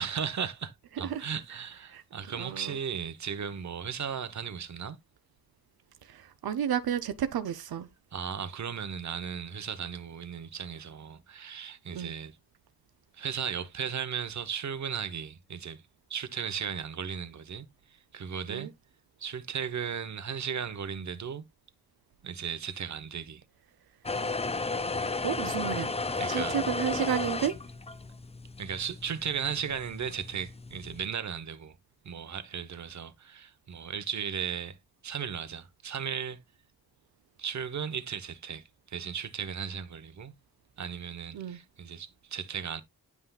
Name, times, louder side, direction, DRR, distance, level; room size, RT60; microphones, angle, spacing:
voice 1, 0.0-5.0 8.1-12.4 13.1-15.8 16.1-18.7 19.2-21.4 22.2-23.4 26.2-26.6 28.6-31.7 32.0-34.8 35.0-36.4 37.4-40.3 40.8-42.8, right 7 dB, 50° right, 0.9 m, -36 dB
voice 2, 2.4-2.8 6.1-7.9 11.9-12.1 18.5-18.7 25.2-25.9 26.3-27.6 41.3-41.6, right 9 dB, 90° right, 0.6 m, -31 dB
sound 1, 24.0-31.1, left 3 dB, 15° left, 0.5 m, -34 dB
9.5 x 5.7 x 2.3 m
wide cardioid pair, 105°, 36 cm